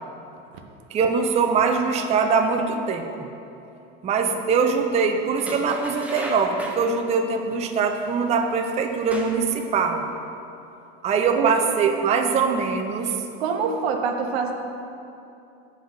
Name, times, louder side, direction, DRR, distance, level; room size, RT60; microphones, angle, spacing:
voice 1, 0.9-3.1 4.0-10.0 11.0-13.2, right 5 dB, 20° right, 4 dB, 0.5 m, -22 dB
sound 1, 5.4-6.9 8.0-8.1 8.8-9.5 9.9-10.0, right 1 dB, 5° right, 0.8 m, -36 dB
voice 2, 13.4-14.5, right 6 dB, 80° right, 4 dB, 0.9 m, -25 dB
6.3 x 4.7 x 6.6 m, 2.7 s
supercardioid pair, 120°, 31 cm